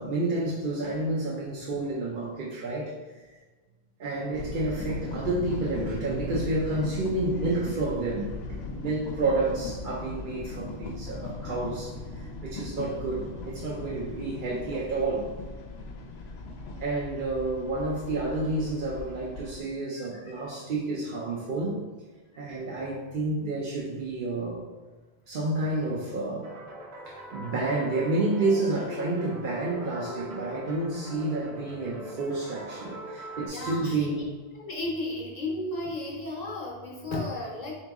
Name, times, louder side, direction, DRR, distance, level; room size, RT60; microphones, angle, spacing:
voice 1, 0.0-3.3 4.0-15.3 16.8-21.8 22.4-24.7 25.3-26.5 27.1-34.3, right 2 dB, 60° right, -6 dB, 0.8 m, -30 dB
sound 1, 4.3-19.6, left 2 dB, 85° left, 0.8 m, -38 dB
sound 2, 26.4-33.5, equal, 90° right, 1.2 m, -41 dB
voice 2, 33.5-34.3 34.5-37.8, left 2 dB, 45° left, -3 dB, 0.8 m, -34 dB
3.8 x 2.9 x 3.5 m, 1.3 s
omnidirectional pair, 1.0 m